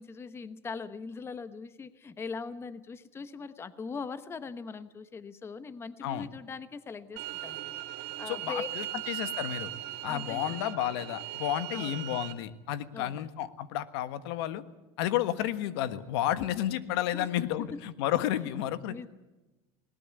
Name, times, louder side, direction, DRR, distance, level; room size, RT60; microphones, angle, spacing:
voice 1, 0.0-7.7 8.2-8.7 8.9-9.0 10.1-10.7 11.7-12.0 12.9-13.3 17.1-17.5 18.9-19.1, left 5 dB, 20° left, 13 dB, 1.0 m, -41 dB
sound 1, 7.2-12.3, right 15 dB, 75° right, 1.9 m, -38 dB
voice 2, 8.3-9.7 10.0-14.6 15.0-19.1, left 12 dB, 85° left, 13 dB, 1.4 m, -31 dB
20.5 x 18.5 x 9.3 m, 1.1 s
supercardioid pair, 140°, 13 cm